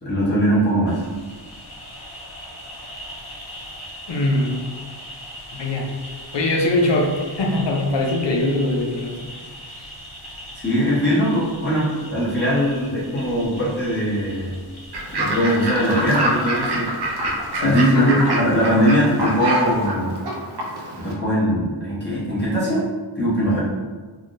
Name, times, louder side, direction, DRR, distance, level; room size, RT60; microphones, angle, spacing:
voice 1, 0.0-1.0 10.6-14.6 15.1-20.2 21.0-23.6, equal, 20° left, -9 dB, 1.0 m, -21 dB
sound 1, 0.9-19.9, equal, 80° left, 1.4 m, -40 dB
voice 2, 4.1-4.7 5.5-6.0 6.3-9.3 9.8-9.9 17.5-18.4, left 1 dB, 60° left, 1 dB, 0.6 m, -21 dB
Fowl / Bird, 14.9-21.1, right 1 dB, 55° right, 0.6 m, -26 dB
3.5 x 2.2 x 2.6 m, 1.4 s
wide cardioid pair, 75°, 48 cm